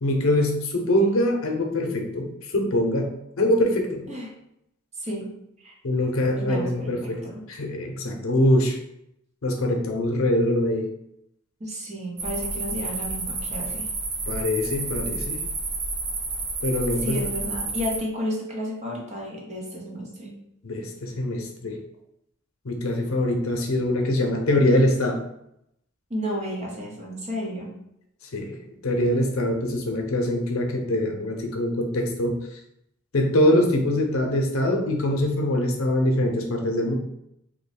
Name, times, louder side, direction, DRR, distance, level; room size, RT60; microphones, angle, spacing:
voice 1, 0.0-4.0 5.8-7.2 7.5-8.8 9.4-10.9 14.3-15.4 16.6-17.2 20.6-21.8 22.6-25.2 28.3-28.5 28.8-32.6 33.1-36.9, left 1 dB, 80° left, 2 dB, 0.7 m, -23 dB
voice 2, 5.0-5.3 5.6-5.8 6.4-7.4 11.6-13.9 17.0-20.3 26.1-27.7, equal, 35° right, -2 dB, 0.9 m, -32 dB
sound 1, 12.2-18.0, right 3 dB, 60° right, 0.6 m, -30 dB
2.9 x 2.2 x 4.1 m, 0.78 s
head